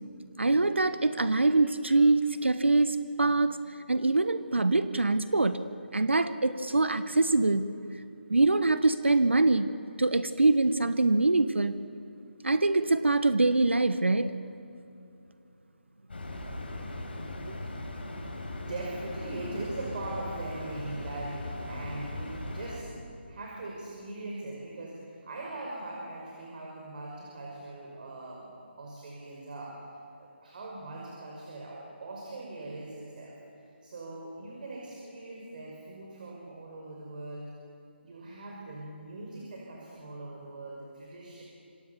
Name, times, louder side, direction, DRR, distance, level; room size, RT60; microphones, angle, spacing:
voice 1, 0.4-3.6 3.9-5.7 5.9-7.6 8.3-9.7 10.0-11.7 12.4-14.3, right 2 dB, 75° right, 12 dB, 1.2 m, -24 dB
sound 1, 16.1-22.8, left 2 dB, 60° left, 6.2 m, -38 dB
voice 2, 18.6-22.9 23.3-29.9 30.2-33.4 33.8-37.5 38.0-41.4, right 2 dB, 45° right, -2 dB, 5.6 m, -41 dB
27.5 x 26.0 x 7.1 m, 2.7 s
figure-of-eight pair, 150°, 6 cm